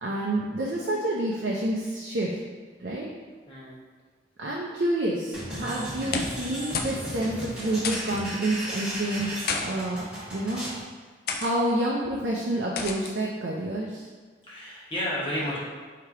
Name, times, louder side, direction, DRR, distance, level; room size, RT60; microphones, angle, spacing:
voice 1, 0.0-2.3 2.8-3.1 4.4-10.6 11.4-14.0, right 1 dB, 65° right, -4 dB, 0.5 m, -28 dB
voice 2, 3.5-3.8 14.4-15.6, equal, 30° left, -8 dB, 1.2 m, -31 dB
sound 1, 5.3-10.8, equal, 5° right, 1.2 m, -36 dB
sound 2, 6.1-6.5 6.7-7.0 7.3-7.4 7.8-8.2 9.2-9.6 10.4-10.6 11.3-11.5 12.8-13.1, left 5 dB, 55° left, 0.3 m, -31 dB
3.3 x 2.8 x 4.6 m, 1.5 s
head